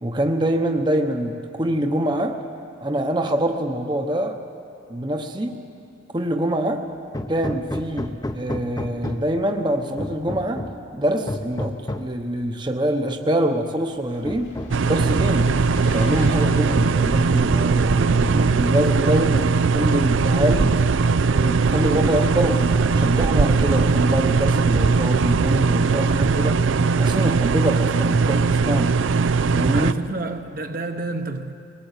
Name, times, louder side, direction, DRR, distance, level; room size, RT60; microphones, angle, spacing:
voice 1, 0.0-2.4 2.8-4.4 4.9-5.6 6.1-6.9 7.3-14.5 14.8-15.6 15.9-20.8 21.3-26.7 27.0-29.0 29.5-29.9, right 1 dB, 25° right, 0.9 m, -24 dB
Hammer, 7.1-9.4 10.0-10.9 11.3-12.2 13.2-13.3 13.7-13.8 14.2-14.9 15.5-16.1 16.3-17.0, left 1 dB, 20° left, 0.7 m, -32 dB
sound 1, 14.1-16.7, equal, 80° left, 3.0 m, -37 dB
sound 2, 14.7-29.9, right 4 dB, 85° right, 0.5 m, -19 dB
voice 2, 29.7-31.5, right 2 dB, 50° right, 1.0 m, -29 dB
21.0 x 19.5 x 8.2 m
head